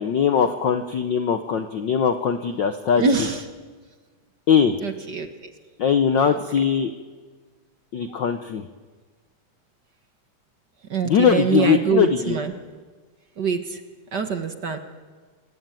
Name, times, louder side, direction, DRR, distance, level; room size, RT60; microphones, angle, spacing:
voice 1, 0.0-3.3 4.5-4.8 5.8-6.9 7.9-8.6 11.0-12.4, left 7 dB, 90° left, 8 dB, 1.0 m, -20 dB
voice 2, 3.0-3.4 4.8-5.3 6.6-6.7 10.9-12.5 13.4-13.8 14.1-14.8, right 5 dB, 45° right, 7 dB, 1.5 m, -24 dB
28.0 x 22.0 x 9.1 m, 1.4 s
omnidirectional pair, 3.4 m